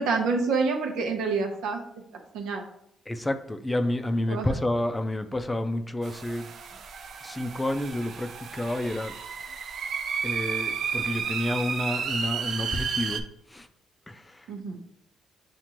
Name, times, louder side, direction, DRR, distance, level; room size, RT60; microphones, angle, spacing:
voice 1, 0.0-1.8 2.3-2.6 4.3-4.5 14.5-14.8, right 4 dB, 90° right, 3 dB, 0.8 m, -27 dB
voice 2, 3.1-6.8 7.2-9.2 10.2-13.2 13.5-13.7 14.1-14.5, left 1 dB, 15° left, 8 dB, 0.4 m, -30 dB
sound 1, 6.0-13.2, right 6 dB, 65° right, 0.5 m, -32 dB
7.2 x 2.5 x 2.9 m, 0.73 s
cardioid pair, 90°, 0 cm